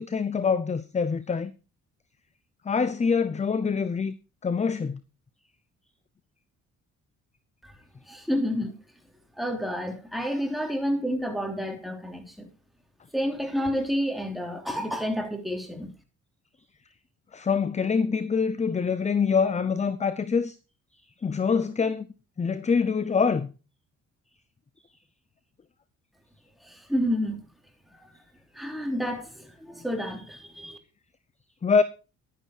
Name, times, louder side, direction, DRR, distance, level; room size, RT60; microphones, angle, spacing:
voice 1, 0.0-1.5 2.7-4.1 4.4-5.0 17.3-20.6 21.2-22.1 22.4-23.5 31.6-31.8, left 5 dB, 25° left, 0.7 m, -25 dB
voice 2, 8.1-8.7 9.4-12.5 13.1-15.9 26.6-27.4 27.9-28.1 28.5-30.8, equal, ahead, 3.2 m, -29 dB
11.0 x 10.0 x 4.6 m
cardioid pair, 90°, 30 cm